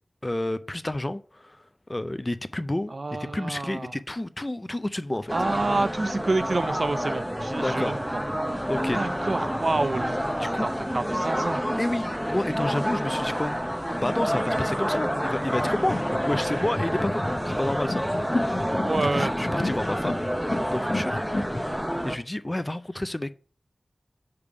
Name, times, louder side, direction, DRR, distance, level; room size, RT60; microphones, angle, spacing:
voice 1, 0.2-1.6 1.9-2.9 3.2-5.3 7.6-7.9 8.7-9.0 10.3-10.7 11.8-13.7 14.0-18.6 18.9-20.2 20.7-21.7 22.0-23.3, left 1 dB, 25° left, 0.4 m, -30 dB
voice 2, 2.9-3.9 5.3-8.2 8.9-10.2 10.6-11.6 18.9-19.3, right 2 dB, 60° right, 0.5 m, -28 dB
sound 1, 5.3-22.2, equal, 5° right, 0.7 m, -28 dB
sound 2, 15.3-21.8, left 2 dB, 45° left, 1.1 m, -32 dB
6.7 x 3.5 x 4.7 m
wide cardioid pair, 75°, 0 cm